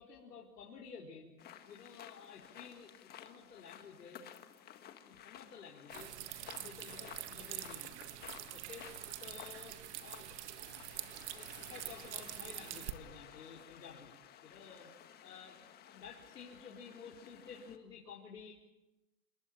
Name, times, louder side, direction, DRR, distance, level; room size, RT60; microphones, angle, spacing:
voice 1, 0.0-1.4 1.6-4.5 5.0-6.1 6.4-8.0 8.5-10.4 10.6-11.0 11.3-14.1 14.4-18.5, left 6 dB, 75° left, -1 dB, 4.4 m, -53 dB
sound 1, 1.4-17.8, left 10 dB, 20° left, 1.7 m, -55 dB
sound 2, 5.9-12.9, right 15 dB, 45° right, 1.8 m, -45 dB
28.0 x 22.0 x 7.7 m, 0.98 s
hypercardioid pair, 145°, 48 cm